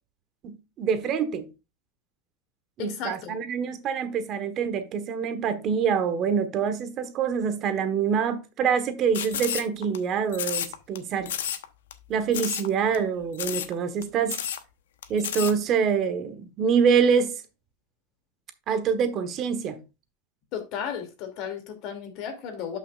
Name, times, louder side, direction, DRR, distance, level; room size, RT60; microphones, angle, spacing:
voice 1, 0.4-1.5 2.8-11.3 12.1-14.4 15.1-17.4 18.7-19.8, right 6 dB, 40° right, 1.2 m, -25 dB
voice 2, 2.8-3.3 20.5-22.8, left 7 dB, 50° left, 2.6 m, -34 dB
sound 1, 9.1-10.0 10.3-11.0 11.3-11.6 11.9-12.0 12.3-12.7 12.9-13.0 13.3-13.7 14.0-14.1 14.3-14.6 15.0-15.5, left 10 dB, 90° left, 0.9 m, -31 dB
12.0 x 5.7 x 2.4 m
supercardioid pair, 130°, 0 cm